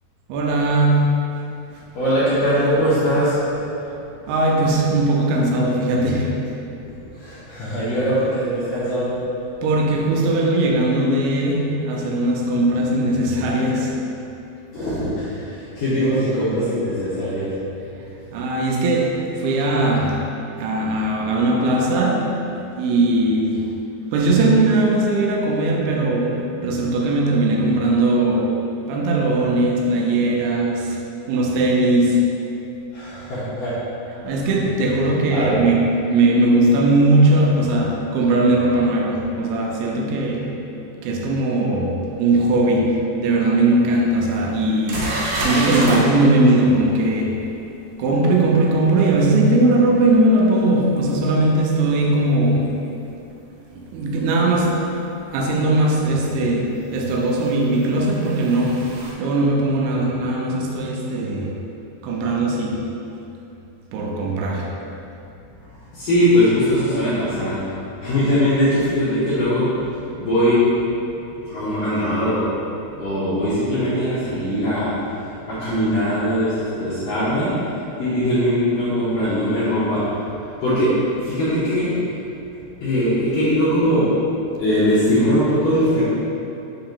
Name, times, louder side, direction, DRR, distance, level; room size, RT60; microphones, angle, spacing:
voice 1, 0.3-1.1 4.3-6.4 9.6-14.1 18.3-20.2 20.6-22.5 22.8-23.7 24.1-31.0 31.3-32.5 34.2-40.6 41.0-45.0 45.4-47.5 48.0-52.8 53.7-55.0 55.3-61.6 62.0-62.9 63.9-64.7, right 2 dB, 85° right, -1 dB, 3.0 m, -19 dB
voice 2, 1.9-3.4 7.1-9.2 14.7-17.6 32.9-33.7 34.2-34.3 35.3-35.6 65.9-70.7 71.3-72.6 72.9-80.1 80.6-81.9 82.8-84.2 84.6-86.0, equal, 70° left, -13 dB, 2.1 m, -21 dB
sound 1, 43.7-43.8 44.3-44.4 44.9-46.0 51.2-51.3 54.0-54.1 55.8-55.9 57.3-59.1, right 1 dB, 70° right, 2.3 m, -27 dB
6.8 x 2.9 x 5.2 m, 2.8 s
omnidirectional pair, 5.4 m